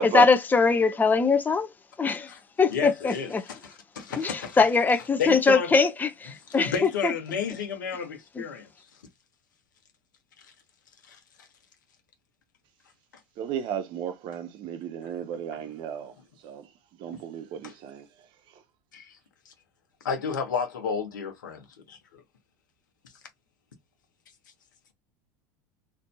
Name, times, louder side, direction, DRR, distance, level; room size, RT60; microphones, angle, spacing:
voice 1, 0.0-1.7 2.0-3.4 4.2-7.1 8.4-8.5, left 4 dB, 20° left, 0.6 m, -22 dB
voice 2, 2.7-4.6 5.2-5.7 6.6-8.9 11.1-11.5 17.6-17.7 18.9-19.2 19.4-19.5 20.0-22.2, left 6 dB, 90° left, 1.0 m, -32 dB
voice 3, 13.4-16.1 16.4-16.7 17.0-18.1 18.5-18.6, right 8 dB, 55° right, 0.7 m, -33 dB
2.6 x 2.5 x 2.2 m
hypercardioid pair, 95°, 10 cm